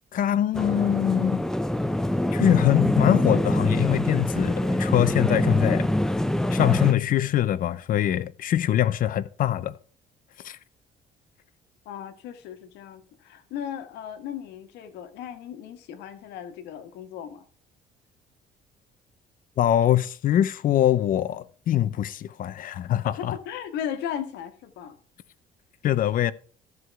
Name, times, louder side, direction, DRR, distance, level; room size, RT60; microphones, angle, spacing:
voice 1, 0.1-1.5 2.3-5.9 6.5-9.8 10.4-10.6 19.6-23.3 25.8-26.3, left 11 dB, 55° left, 0.6 m, -23 dB
sound 1, 0.5-6.9, left 1 dB, 5° left, 0.5 m, -25 dB
voice 2, 11.8-17.4 23.0-24.9, left 9 dB, 85° left, 1.4 m, -36 dB
13.5 x 4.8 x 5.7 m
cardioid pair, 110°, 17 cm